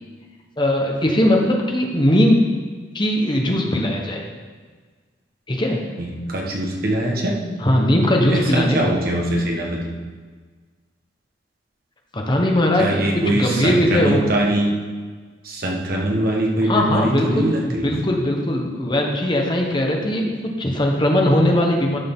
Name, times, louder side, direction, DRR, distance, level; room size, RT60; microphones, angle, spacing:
voice 1, 0.6-2.4 2.9-4.2 5.5-5.8 7.6-8.8 12.1-14.3 16.6-22.0, left 1 dB, 25° left, 1 dB, 1.2 m, -19 dB
voice 2, 6.0-7.4 8.3-9.8 12.8-14.7 15.4-17.9, right 1 dB, 55° right, -1 dB, 1.5 m, -22 dB
11.5 x 6.7 x 3.8 m, 1.5 s
head